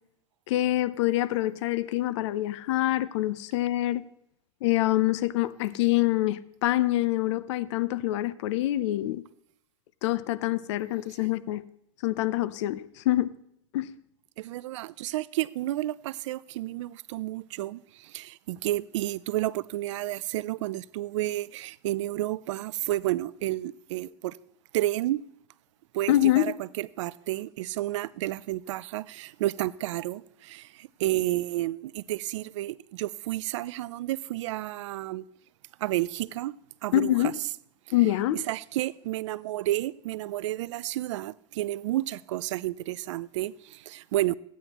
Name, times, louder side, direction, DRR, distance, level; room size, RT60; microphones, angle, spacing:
voice 1, 0.5-4.0 4.6-9.2 10.0-11.7 12.0-13.3 13.7-13.9 26.1-26.5 36.9-37.3 37.9-38.4, left 15 dB, 75° left, 0.6 m, -25 dB
voice 2, 14.4-24.4 24.7-25.2 25.9-35.2 35.8-36.5 36.8-37.3 38.3-44.4, right 16 dB, 75° right, 0.4 m, -31 dB
15.5 x 9.3 x 3.0 m
hypercardioid pair, 110°, 15 cm